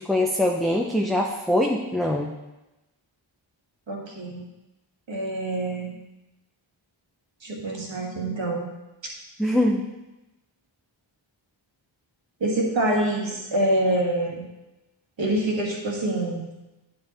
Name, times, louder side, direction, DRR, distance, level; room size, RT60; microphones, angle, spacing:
voice 1, 0.0-2.3 9.4-9.8, left 1 dB, ahead, 0 dB, 0.6 m, -23 dB
voice 2, 3.9-4.4 5.1-5.9 7.4-8.7 12.4-14.4 15.2-16.5, right 1 dB, 65° right, -1 dB, 1.9 m, -26 dB
9.3 x 5.4 x 4.2 m, 1.0 s
wide cardioid pair, 60°, 48 cm